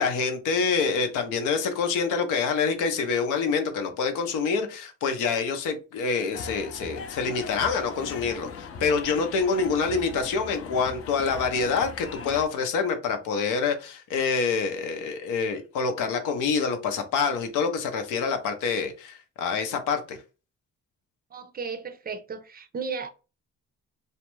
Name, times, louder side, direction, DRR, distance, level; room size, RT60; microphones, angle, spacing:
voice 1, 0.0-20.2, left 5 dB, 90° left, 0.6 m, -26 dB
sound 1, 6.3-12.5, left 5 dB, 50° left, 0.5 m, -39 dB
voice 2, 21.3-23.1, right 5 dB, 30° right, 0.4 m, -34 dB
2.4 x 2.2 x 3.0 m
cardioid pair, 90°, 30 cm